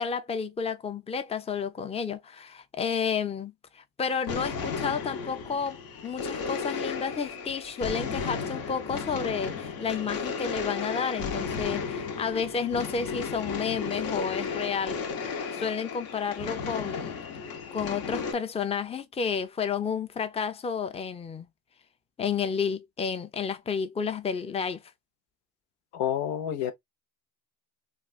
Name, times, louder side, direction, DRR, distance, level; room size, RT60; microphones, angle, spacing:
voice 1, 0.0-15.0 15.5-17.1 17.7-21.5 22.2-24.8, left 6 dB, 15° left, 0.5 m, -31 dB
sound 1, 4.1-18.3, left 5 dB, 60° left, 0.9 m, -34 dB
voice 2, 25.9-26.7, left 10 dB, 85° left, 0.7 m, -28 dB
3.2 x 2.4 x 2.4 m
supercardioid pair, 85°, 39 cm